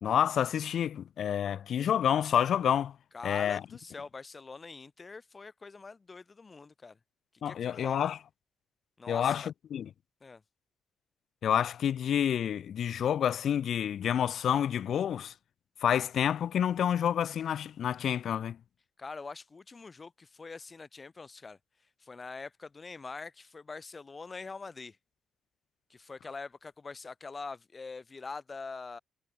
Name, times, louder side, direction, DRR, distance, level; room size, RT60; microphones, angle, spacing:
voice 1, 0.0-3.0 3.2-3.6 7.4-8.2 9.1-9.4 9.7-9.9 11.4-15.3 15.8-18.6, left 9 dB, 65° left, 0.6 m, -28 dB
voice 2, 3.1-7.0 7.4-8.1 9.0-9.5 10.2-10.4 19.0-21.6 22.0-25.0 25.9-29.0, left 4 dB, 30° left, 1.4 m, -44 dB
cardioid pair, 90°, 0 cm